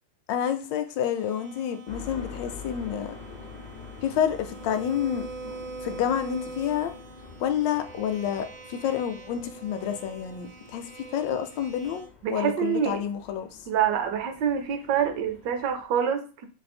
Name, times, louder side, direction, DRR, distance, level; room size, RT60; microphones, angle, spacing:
voice 1, 0.3-3.1 4.0-5.3 5.8-6.9 7.4-13.6, left 9 dB, 75° left, 8 dB, 1.2 m, -29 dB
sound 1, 1.1-12.1, right 3 dB, 55° right, 0.6 m, -43 dB
sound 2, 1.9-15.8, left 5 dB, 50° left, 0.5 m, -46 dB
voice 2, 12.2-13.0 13.7-16.5, right 8 dB, 70° right, 7 dB, 1.1 m, -26 dB
3.2 x 2.7 x 4.2 m, 0.34 s
omnidirectional pair, 2.1 m